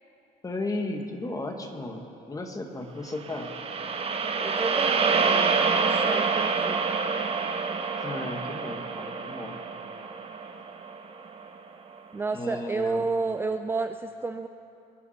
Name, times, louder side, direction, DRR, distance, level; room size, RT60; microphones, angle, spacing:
voice 1, 0.4-3.5 8.0-9.6 12.3-13.1, left 2 dB, 20° left, 4 dB, 1.6 m, -34 dB
sound 1, 3.2-11.5, right 5 dB, 35° right, 1.1 m, -27 dB
voice 2, 4.4-6.8 12.1-14.5, right 3 dB, 15° right, 8 dB, 0.4 m, -31 dB
25.0 x 9.7 x 4.3 m, 2.9 s
cardioid pair, 110°, 17 cm